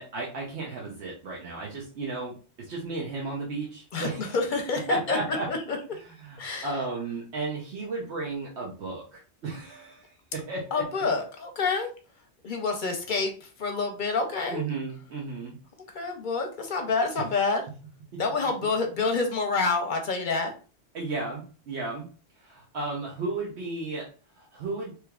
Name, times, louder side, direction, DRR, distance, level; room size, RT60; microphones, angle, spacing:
voice 1, 0.0-4.4 4.9-5.5 6.0-10.9 14.5-15.6 18.1-18.2 20.9-22.1 22.4-25.0, right 3 dB, 75° right, -2 dB, 1.0 m, -34 dB
voice 2, 3.9-4.8 5.1-5.2 5.5-5.6 6.4-6.7 10.7-11.9 12.4-14.6 15.9-17.6 18.2-20.5, left 4 dB, 50° left, 4 dB, 0.7 m, -27 dB
3.3 x 2.9 x 2.3 m, 0.36 s
omnidirectional pair, 1.2 m